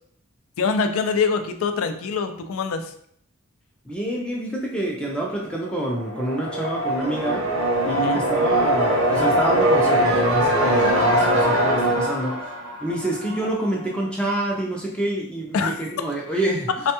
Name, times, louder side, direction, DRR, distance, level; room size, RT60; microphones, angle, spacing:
voice 1, 0.6-2.9 7.9-8.2 15.5-15.7, left 5 dB, 75° left, 8 dB, 0.4 m, -24 dB
voice 2, 3.9-7.5 7.8-12.4 12.8-16.7, right 1 dB, 5° left, -2 dB, 0.3 m, -27 dB
sound 1, 5.9-13.7, right 1 dB, 80° right, 0.7 m, -21 dB
3.2 x 2.2 x 2.8 m, 0.64 s
head